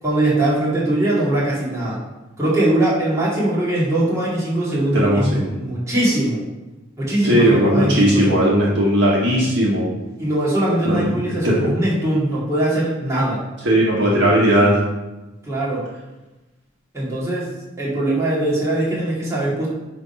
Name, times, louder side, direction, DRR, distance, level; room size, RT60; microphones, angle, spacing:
voice 1, 0.0-2.0 2.4-6.4 7.0-8.6 10.2-13.4 15.4-15.8 16.9-17.5 17.8-19.7, right 1 dB, 15° right, -9 dB, 2.4 m, -21 dB
voice 2, 4.9-5.5 7.2-9.9 10.8-11.6 13.6-14.8, equal, 55° right, -5 dB, 1.8 m, -17 dB
9.3 x 3.7 x 5.6 m, 1.1 s
head